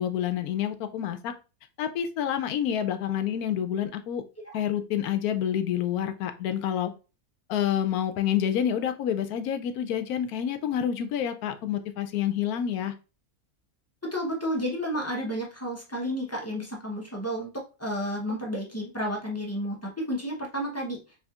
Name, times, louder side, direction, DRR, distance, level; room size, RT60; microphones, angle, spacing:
voice 1, 0.0-1.3 1.8-4.2 4.5-6.9 7.5-12.9, left 9 dB, 75° left, 9 dB, 1.0 m, -28 dB
voice 2, 14.0-21.0, equal, 15° left, -1 dB, 0.6 m, -31 dB
4.3 x 3.3 x 2.4 m, 0.31 s
omnidirectional pair, 1.6 m